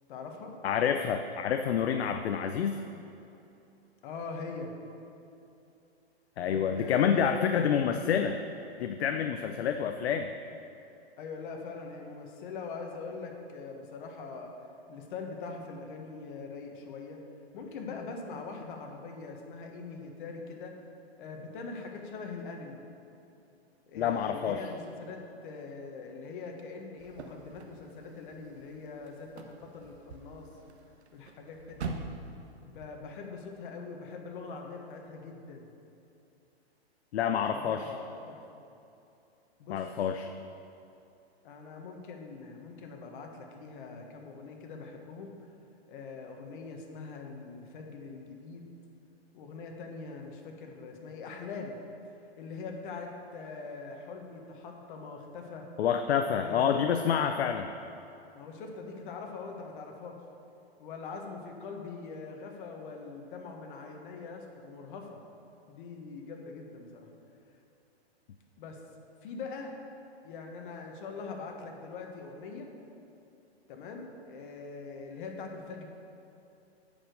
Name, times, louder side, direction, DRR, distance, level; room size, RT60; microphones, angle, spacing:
voice 1, 0.1-0.6 4.0-4.8 6.4-7.7 11.2-14.5 14.9-17.2 17.5-20.7 21.2-22.8 23.9-30.5 31.1-32.0 32.6-35.7 37.5-38.4 39.6-39.9 41.4-45.3 45.9-48.7 49.3-51.8 52.4-55.7 56.4-56.8 58.3-60.2 60.8-65.2 65.7-67.1 68.6-68.8 69.2-69.7 70.2-72.7 73.7-75.9, left 4 dB, 50° left, 2 dB, 1.4 m, -42 dB
voice 2, 0.6-2.8 6.4-8.4 8.8-10.3 23.9-24.7 37.1-37.9 39.7-40.3 55.8-57.7, left 8 dB, 75° left, 6 dB, 0.6 m, -28 dB
sound 1, 27.0-32.9, right 4 dB, 85° right, 1.0 m, -44 dB
8.5 x 5.1 x 6.4 m, 2.8 s
hypercardioid pair, 140°, 32 cm